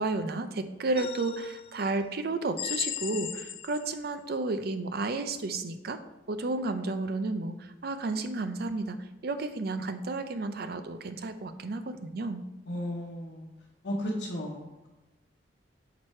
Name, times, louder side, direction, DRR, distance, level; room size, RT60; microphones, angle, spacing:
voice 1, 0.0-6.0 6.3-12.4, right 3 dB, 60° right, 9 dB, 0.5 m, -32 dB
sound 1, 1.0-1.8 2.6-4.0, left 10 dB, 35° left, 0.3 m, -36 dB
voice 2, 12.7-13.5 13.8-14.9, equal, 80° left, -5 dB, 1.0 m, -34 dB
6.0 x 4.8 x 4.3 m, 1.0 s
head